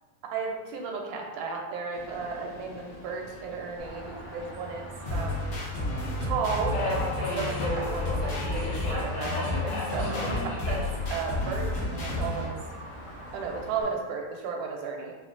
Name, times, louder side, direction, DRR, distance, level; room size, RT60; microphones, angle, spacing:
voice 1, 0.3-5.4 6.2-12.6 13.3-15.1, right 5 dB, 85° right, 1 dB, 2.0 m, -34 dB
Subway metro underground, 1.9-14.0, left 2 dB, 85° left, 2.1 m, -38 dB
sound 1, 3.8-13.8, right 1 dB, 60° right, 0.5 m, -44 dB
sound 2, 5.1-12.5, left 2 dB, 65° left, 1.2 m, -31 dB
5.0 x 2.1 x 2.4 m, 1.2 s
omnidirectional pair, 3.5 m